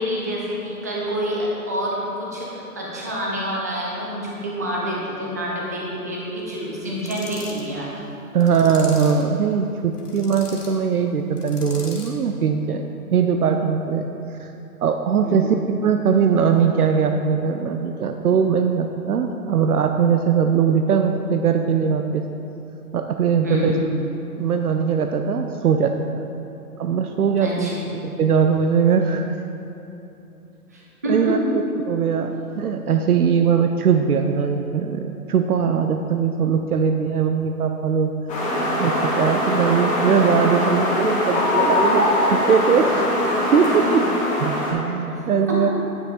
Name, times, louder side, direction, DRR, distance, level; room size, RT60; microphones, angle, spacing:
voice 1, 0.0-7.9 8.3-8.4 15.2-15.6 23.4-23.8 27.4-27.9 30.7-31.4 45.1-45.2 45.5-45.7, equal, 10° right, -4 dB, 0.4 m, -27 dB
sound 1, 7.0-7.7 8.4-9.3 9.9-10.7 11.4-12.2, left 3 dB, 85° left, 2.0 m, -39 dB
voice 2, 8.3-12.9 13.1-14.1 14.4-14.5 14.8-22.2 22.9-23.8 24.4-26.2 26.8-27.7 28.0-29.3 31.1-31.4 31.9-38.1 38.8-43.1 43.5-44.1 44.4-45.7, right 6 dB, 75° right, 6 dB, 0.7 m, -20 dB
sound 2, 38.3-44.7, left 1 dB, 15° left, 1.6 m, -21 dB
9.7 x 6.2 x 4.3 m, 2.9 s
figure-of-eight pair, 135°, 46 cm